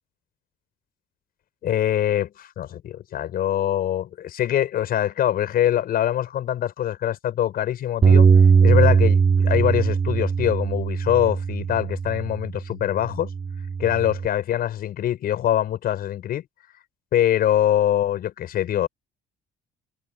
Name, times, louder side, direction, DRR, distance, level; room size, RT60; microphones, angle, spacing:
voice 1, 1.6-8.3 8.6-13.3 13.8-16.4 17.1-18.9, left 11 dB, 60° left, 6.4 m, -23 dB
Bass guitar, 8.0-12.5 13.1-14.3, right 6 dB, 35° right, 4.1 m, -19 dB
cardioid pair, 110°, 17 cm